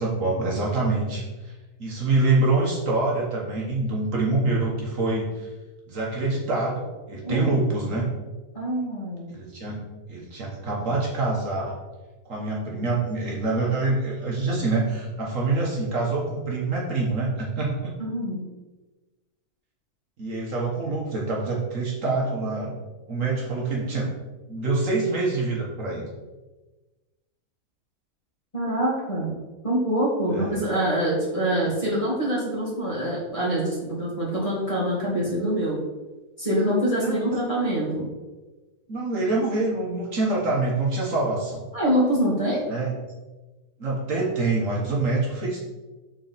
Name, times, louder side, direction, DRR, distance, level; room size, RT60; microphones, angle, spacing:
voice 1, 0.0-1.5 1.8-5.5 5.9-8.1 9.3-9.8 10.1-11.8 12.3-17.9 20.2-22.8 23.1-24.1 24.5-26.0 30.3-30.6 35.1-35.3 37.0-37.3 38.9-41.6 42.7-42.9 43.8-45.6, right 3 dB, 55° right, -3 dB, 1.4 m, -25 dB
voice 2, 8.5-9.3 18.0-18.4 28.5-29.3 29.6-35.8 36.4-38.1 41.7-42.6, right 1 dB, 20° left, -7 dB, 1.9 m, -25 dB
6.2 x 4.1 x 4.0 m, 1.2 s
omnidirectional pair, 1.6 m